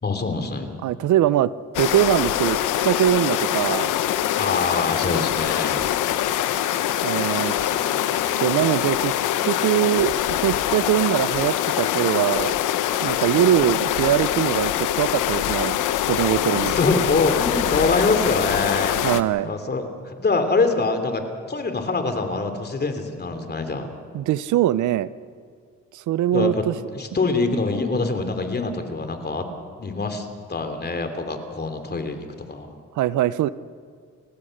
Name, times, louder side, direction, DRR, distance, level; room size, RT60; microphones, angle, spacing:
voice 1, 0.0-0.8 4.4-5.9 7.5-8.1 16.5-19.0 19.4-21.2 21.5-23.9 26.3-26.6 26.9-29.4 29.8-32.8, left 3 dB, 35° left, 7 dB, 3.1 m, -25 dB
voice 2, 0.8-3.9 7.0-7.5 8.4-9.1 9.4-12.6 13.0-15.8 16.1-16.8 19.0-19.5 24.1-25.1 25.9-26.7 33.0-33.5, right 12 dB, 75° right, 17 dB, 0.7 m, -22 dB
sound 1, 1.7-19.2, left 12 dB, 85° left, 1.0 m, -24 dB
29.5 x 15.5 x 6.6 m, 2.1 s
cardioid pair, 90°, 30 cm